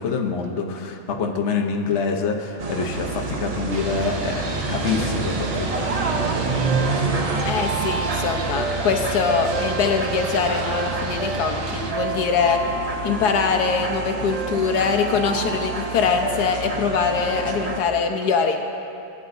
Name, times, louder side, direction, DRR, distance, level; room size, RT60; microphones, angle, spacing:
voice 1, 0.0-6.0, left 5 dB, 50° left, 2 dB, 1.0 m, -26 dB
sound 1, 2.6-17.8, right 3 dB, 60° right, 0.4 m, -27 dB
sound 2, 3.7-11.9, right 4 dB, 90° right, 1.6 m, -31 dB
voice 2, 7.4-12.6 13.0-18.6, left 5 dB, 75° left, 4 dB, 1.2 m, -23 dB
19.5 x 10.0 x 2.6 m, 2.6 s
omnidirectional pair, 1.8 m